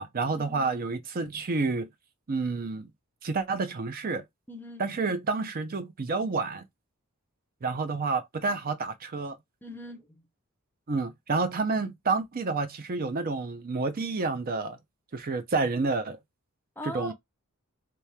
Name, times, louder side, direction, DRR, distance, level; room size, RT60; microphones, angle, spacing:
voice 1, 0.0-1.9 2.3-2.9 3.2-4.2 4.8-6.6 7.6-9.4 10.9-14.8 15.1-16.2 16.8-17.1, right 3 dB, 40° right, 0.5 m, -29 dB
voice 2, 4.5-4.9 9.6-10.2 16.8-17.1, left 1 dB, 10° left, 0.6 m, -41 dB
3.0 x 2.8 x 3.3 m
head